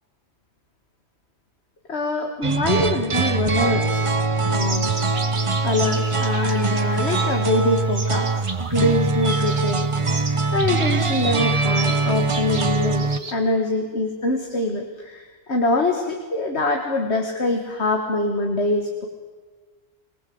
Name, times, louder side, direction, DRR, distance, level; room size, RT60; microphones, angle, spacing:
voice 1, 1.9-4.1 4.5-4.9 5.6-8.3 8.6-19.1, left 2 dB, 85° left, 3 dB, 2.2 m, -24 dB
sound 1, 2.4-13.2, right 3 dB, 35° right, 0.8 m, -22 dB
sound 2, 4.5-8.8 9.2-13.3, right 3 dB, 65° right, 2.1 m, -34 dB
26.0 x 19.5 x 7.9 m, 1.4 s
omnidirectional pair, 1.1 m